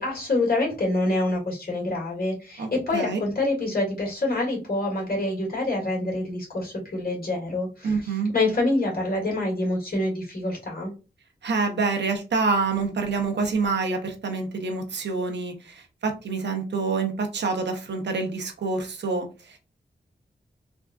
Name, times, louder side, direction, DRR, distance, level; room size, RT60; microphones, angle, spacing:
voice 1, 0.0-10.9, left 2 dB, 60° left, -2 dB, 1.7 m, -26 dB
voice 2, 2.6-3.2 7.8-8.3 11.4-19.6, right 4 dB, 80° right, 4 dB, 0.7 m, -27 dB
3.4 x 2.3 x 2.5 m, 0.31 s
cardioid pair, 60°, 18 cm